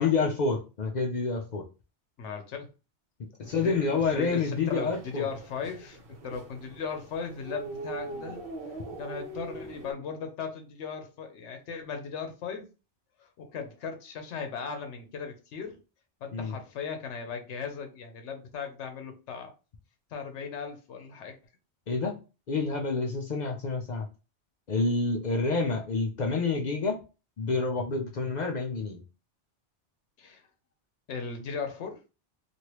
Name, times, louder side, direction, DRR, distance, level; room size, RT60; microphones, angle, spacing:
voice 1, 0.0-1.6 3.4-5.3 16.3-16.6 21.9-22.2 22.5-24.1 24.7-27.0 27.4-29.0, left 4 dB, 55° left, 0.5 m, -28 dB
voice 2, 2.2-2.7 3.4-8.4 9.0-12.7 13.2-15.8 16.2-19.5 20.1-21.4 30.2-30.4 31.1-32.0, left 6 dB, 75° left, 1.0 m, -37 dB
sound 1, 3.4-9.9, right 3 dB, 55° right, 0.9 m, -43 dB
3.2 x 2.5 x 2.9 m
omnidirectional pair, 1.2 m